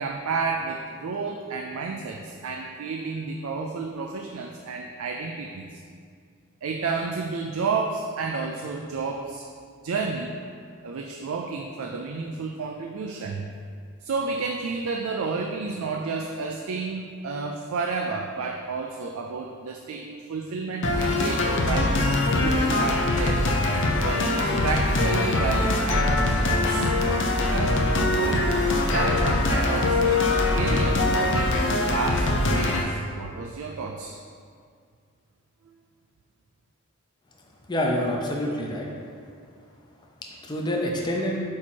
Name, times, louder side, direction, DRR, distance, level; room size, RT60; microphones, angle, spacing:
voice 1, 0.0-5.8 6.6-9.4 9.8-10.3 10.8-13.5 14.0-22.0 22.3-23.5 24.0-26.9 27.4-28.5 28.9-30.2 30.5-31.1 31.3-34.1, right 4 dB, 80° right, 2 dB, 0.4 m, -31 dB
sound 1, 20.8-32.8, left 2 dB, 60° left, 0.6 m, -23 dB
voice 2, 37.7-38.9 40.5-41.4, equal, 20° left, -2 dB, 0.6 m, -26 dB
8.4 x 2.9 x 4.5 m, 2.2 s
head